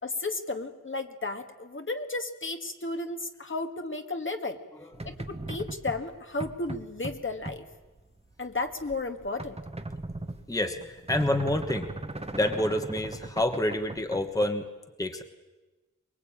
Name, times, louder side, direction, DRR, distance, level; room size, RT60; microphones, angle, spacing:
voice 1, 0.0-4.6 5.0-7.6 8.4-9.6, left 2 dB, 40° left, 6 dB, 1.8 m, -33 dB
sound 1, 4.9-14.5, right 2 dB, 20° right, 1.3 m, -39 dB
voice 2, 10.5-11.9 12.3-14.7 15.0-15.2, left 1 dB, 10° left, 6 dB, 1.3 m, -28 dB
23.5 x 22.0 x 8.8 m, 1.2 s
wide cardioid pair, 105°, 31 cm